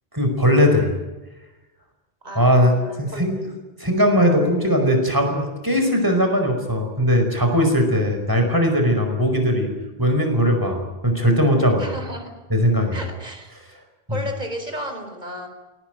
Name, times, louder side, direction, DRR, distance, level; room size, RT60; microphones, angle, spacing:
voice 1, 0.1-0.9 2.4-3.4 3.8-9.7 10.0-11.9 12.5-13.0 14.1-14.2, equal, 20° right, 3 dB, 5.2 m, -19 dB
voice 2, 2.2-3.4 11.8-12.4 12.9-13.5 14.1-15.5, right 1 dB, 45° right, 4 dB, 4.5 m, -33 dB
23.5 x 18.0 x 9.3 m, 1.1 s
omnidirectional pair, 1.0 m